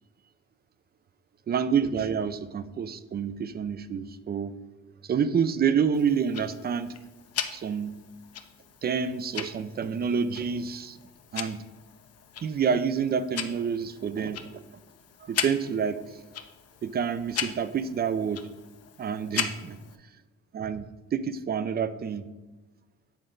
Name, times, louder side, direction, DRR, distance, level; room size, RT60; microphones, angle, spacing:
voice 1, 1.5-4.5 5.0-6.9 7.5-8.0 8.8-11.0 11.3-11.6 12.4-14.6 15.2-16.2 16.8-18.5 19.0-19.8 20.5-22.3, right 7 dB, 35° right, 13 dB, 0.4 m, -28 dB
Tick-tock, 5.9-20.0, left 8 dB, 55° left, 0.6 m, -38 dB
8.3 x 3.8 x 3.8 m, 1.1 s
cardioid pair, 90°, 30 cm